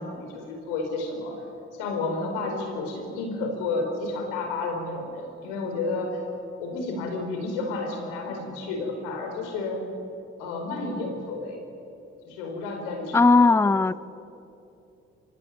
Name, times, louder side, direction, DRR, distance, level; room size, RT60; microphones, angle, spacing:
voice 1, 0.0-1.4 1.7-6.2 6.6-9.8 10.4-11.6 12.3-13.4, left 3 dB, 85° left, 3 dB, 4.8 m, -31 dB
voice 2, 13.1-13.9, left 3 dB, 10° left, 18 dB, 0.6 m, -17 dB
25.0 x 23.5 x 9.3 m, 2.8 s
hypercardioid pair, 45°, 33 cm